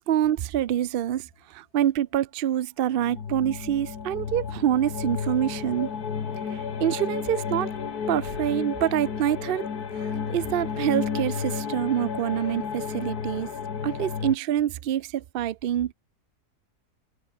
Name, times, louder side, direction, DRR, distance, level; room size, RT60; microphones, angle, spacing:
voice 1, 0.0-5.9 6.5-7.7 8.1-9.7 9.9-13.5 13.8-15.9, right 11 dB, 80° right, 0.5 m, -26 dB
sound 1, 2.9-14.4, left 6 dB, 70° left, 2.2 m, -32 dB
omnidirectional pair, 1.7 m